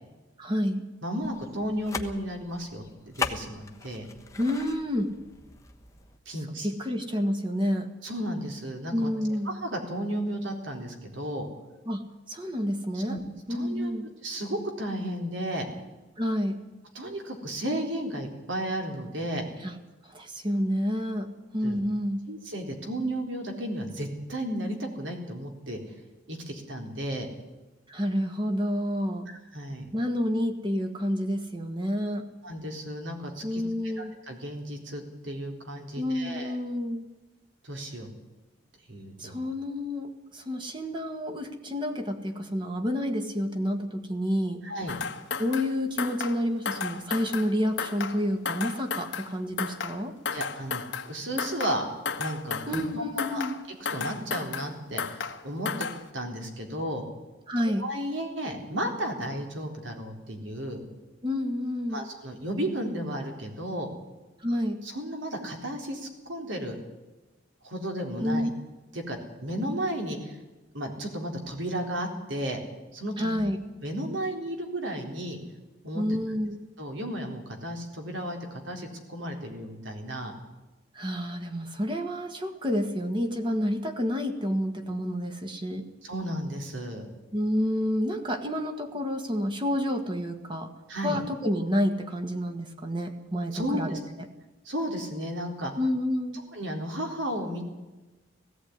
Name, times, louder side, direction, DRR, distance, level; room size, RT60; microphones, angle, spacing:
voice 1, 0.4-0.9 4.4-5.2 6.6-7.9 8.9-9.6 11.9-13.2 13.5-14.0 16.2-16.6 19.6-19.8 20.1-22.2 27.9-29.3 29.9-32.3 33.4-34.1 36.0-37.1 39.2-44.6 45.4-50.1 52.7-53.6 57.5-57.9 61.2-62.0 64.4-64.8 68.2-68.5 73.2-73.6 75.9-76.6 81.0-85.9 87.3-90.7 91.0-94.0 95.8-96.4, equal, 25° right, 5 dB, 1.7 m, -29 dB
voice 2, 1.0-4.0 6.3-6.7 8.0-9.1 9.5-11.5 12.9-13.2 13.5-13.9 14.2-15.7 16.9-19.4 21.6-21.8 22.3-25.8 26.3-27.3 29.3-29.9 32.4-36.5 37.6-38.1 38.9-39.4 44.6-45.0 50.3-51.8 52.2-53.4 53.9-55.9 56.1-57.0 57.8-60.8 61.9-63.9 64.8-66.8 67.6-68.5 68.9-70.4 70.7-72.6 72.9-73.4 73.8-75.4 75.8-76.1 76.8-80.3 86.0-87.1 90.9-91.2 93.5-93.8 94.6-95.7 96.5-97.6, right 1 dB, 70° right, 3 dB, 4.0 m, -33 dB
sound 1, 1.2-6.2, left 4 dB, 15° left, 1.1 m, -38 dB
sound 2, 44.9-45.7 46.0-46.4 46.7-47.5 47.8-48.2 48.5-49.3 49.6-50.0 50.3-51.1 51.4-51.8 52.1-52.9 53.2-53.6 53.9-54.7 55.0-55.4 55.7-56.0, left 5 dB, 65° left, 1.4 m, -33 dB
17.5 x 15.5 x 9.6 m, 1.1 s
head